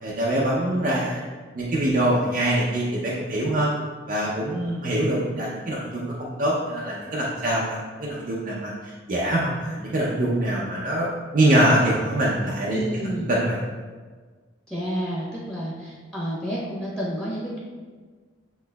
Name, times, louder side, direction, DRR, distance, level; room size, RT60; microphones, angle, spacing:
voice 1, 0.0-1.2 1.5-3.7 4.1-11.1 11.3-12.8 13.2-13.6, right 1 dB, 45° right, -5 dB, 0.6 m, -24 dB
voice 2, 12.7-13.3 14.7-17.6, equal, 5° left, -7 dB, 1.1 m, -30 dB
7.6 x 3.1 x 2.3 m, 1.5 s
head